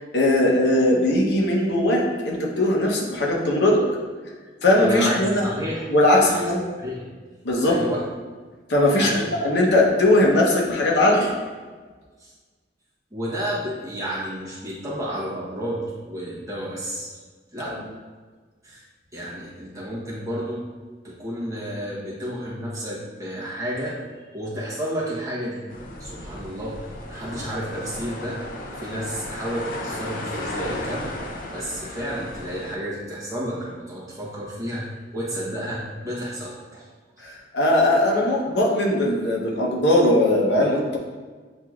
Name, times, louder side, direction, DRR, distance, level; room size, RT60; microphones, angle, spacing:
voice 1, 0.1-3.8 4.6-5.4 5.9-6.6 7.4-7.8 8.7-9.1 9.4-11.3 17.7-17.8 37.2-41.0, left 1 dB, 70° left, -1 dB, 0.8 m, -19 dB
voice 2, 4.8-6.4 6.8-7.1 7.6-8.0 8.9-9.3 11.1-11.3 12.2-12.3 13.1-17.2 17.5-17.8 18.6-18.8 19.1-20.7 21.0-24.0 24.3-25.6 26.0-28.5 28.8-31.1 31.5-36.9, equal, 20° right, -6 dB, 0.9 m, -31 dB
sound 1, 25.7-32.8, left 1 dB, 45° left, 0.5 m, -34 dB
7.4 x 2.9 x 2.4 m, 1.4 s
head